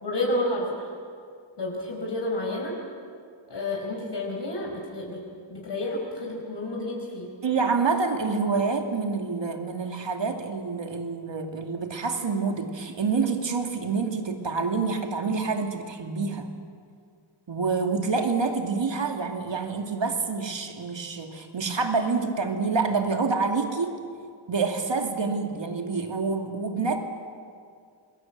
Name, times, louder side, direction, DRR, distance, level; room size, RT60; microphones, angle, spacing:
voice 1, 0.0-0.7 1.6-2.7 3.5-5.2 5.5-7.3, left 1 dB, 60° left, -1 dB, 5.3 m, -30 dB
voice 2, 7.4-16.5 17.5-24.0 24.5-27.0, right 4 dB, 65° right, 4 dB, 2.5 m, -27 dB
27.5 x 21.0 x 7.7 m, 2.2 s
wide cardioid pair, 115°, 48 cm